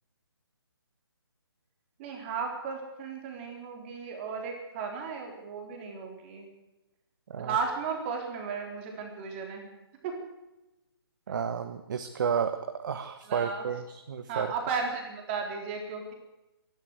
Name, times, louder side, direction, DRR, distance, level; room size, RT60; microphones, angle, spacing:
voice 1, 2.0-6.5 7.4-9.7 10.0-10.1 13.3-13.7 14.3-16.1, right 5 dB, 25° right, 2 dB, 3.8 m, -35 dB
voice 2, 11.3-14.5, right 7 dB, 50° right, 8 dB, 1.4 m, -32 dB
27.5 x 12.0 x 8.0 m, 0.98 s
hypercardioid pair, 150°, 13 cm